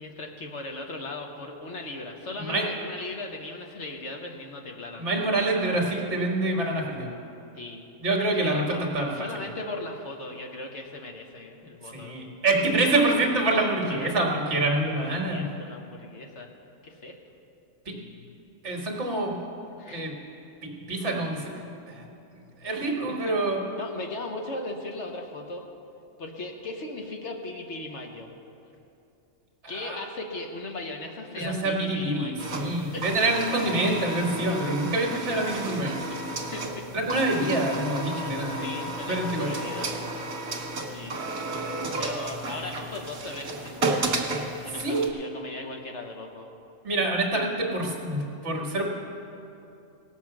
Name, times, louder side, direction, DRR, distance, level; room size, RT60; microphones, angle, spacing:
voice 1, 0.0-5.7 7.5-7.8 8.2-8.8 9.1-12.2 13.9-14.1 14.7-16.5 16.8-17.2 19.8-20.2 23.0-23.3 23.8-25.6 26.2-28.3 29.7-32.6 32.9-33.0 36.1-36.2 36.5-36.9 38.6-40.0 40.9-41.1 42.0-44.1 44.6-46.5, left 2 dB, 60° left, 2 dB, 1.3 m, -38 dB
voice 2, 5.0-7.1 8.0-9.3 11.9-15.5 17.9-18.0 18.6-19.4 19.9-20.1 20.6-21.5 21.9-22.1 22.6-23.6 29.6-30.0 31.4-36.0 36.9-38.7 39.1-39.5 44.8-45.1 46.8-48.9, right 2 dB, 55° right, 0 dB, 1.8 m, -26 dB
sound 1, 32.4-45.1, right 2 dB, 75° right, 1.8 m, -33 dB
18.0 x 7.4 x 5.9 m, 2.8 s
omnidirectional pair, 1.4 m